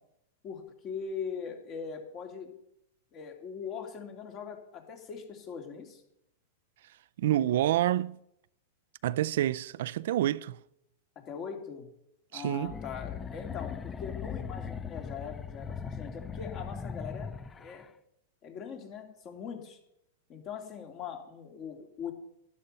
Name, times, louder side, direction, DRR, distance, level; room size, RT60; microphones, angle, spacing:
voice 1, 0.4-2.5 3.1-6.0 11.2-11.9 12.3-17.9 18.4-19.8 20.3-22.1, left 6 dB, 35° left, 2.7 m, -41 dB
voice 2, 7.2-8.2 9.0-10.6 12.3-12.7, right 13 dB, 70° right, 0.4 m, -28 dB
sound 1, 12.6-17.9, left 6 dB, 15° left, 0.5 m, -39 dB
11.5 x 11.0 x 5.5 m
hypercardioid pair, 130°, 0 cm